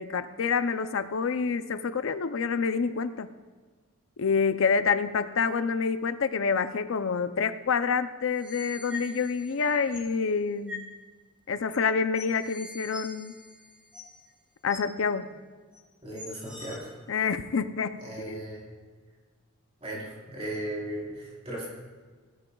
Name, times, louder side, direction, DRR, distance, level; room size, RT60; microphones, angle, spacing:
voice 1, 0.0-3.3 4.2-10.9 11.5-13.3 14.6-15.3 17.1-18.4, left 5 dB, 65° left, 11 dB, 0.5 m, -27 dB
sound 1, 8.2-10.1 10.7-10.9 11.7-11.8 12.1-14.3 14.7-14.8 15.7-15.8 16.1-16.8, left 3 dB, 5° right, 2.9 m, -44 dB
voice 2, 16.0-17.0 18.0-18.6 19.8-21.7, right 1 dB, 30° right, -4 dB, 3.8 m, -37 dB
17.0 x 14.0 x 2.3 m, 1.5 s
head